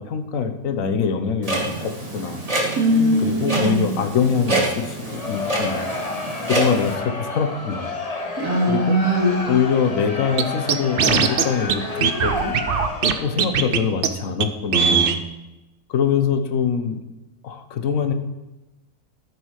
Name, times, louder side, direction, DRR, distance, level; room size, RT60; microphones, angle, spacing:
voice 1, 0.0-2.4 3.2-5.9 6.5-7.9 8.7-9.0 9.5-12.5 13.2-15.1 15.9-17.0 17.4-18.1, left 6 dB, 60° left, 7 dB, 1.3 m, -24 dB
Clock, 1.4-7.0, right 2 dB, 25° right, 1.7 m, -27 dB
voice 2, 2.8-3.8 8.4-9.5, equal, 85° right, -2 dB, 3.0 m, -20 dB
Crowd, 4.9-13.4, left 3 dB, 25° left, 1.1 m, -30 dB
Scratching (performance technique), 10.4-10.5 10.7-11.4 11.7-11.8 12.0-13.1 13.4-13.8 14.0-14.1 14.4-14.5 14.7-15.2, right 7 dB, 55° right, 0.6 m, -19 dB
14.0 x 6.1 x 4.7 m, 1.0 s
omnidirectional pair, 1.6 m